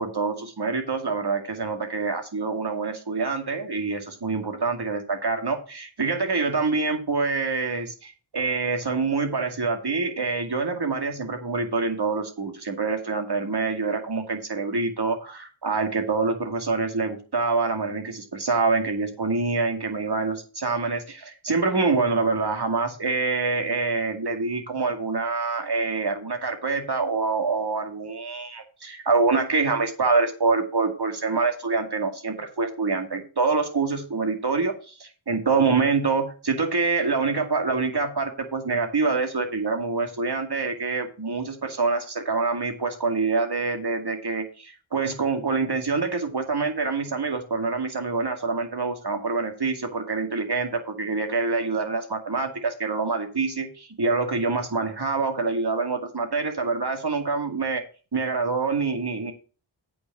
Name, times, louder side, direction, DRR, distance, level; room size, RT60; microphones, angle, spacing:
voice 1, 0.0-57.8 58.1-59.3, right 4 dB, 55° right, 5 dB, 2.3 m, -26 dB
8.4 x 5.5 x 7.1 m, 0.35 s
wide cardioid pair, 70°, 48 cm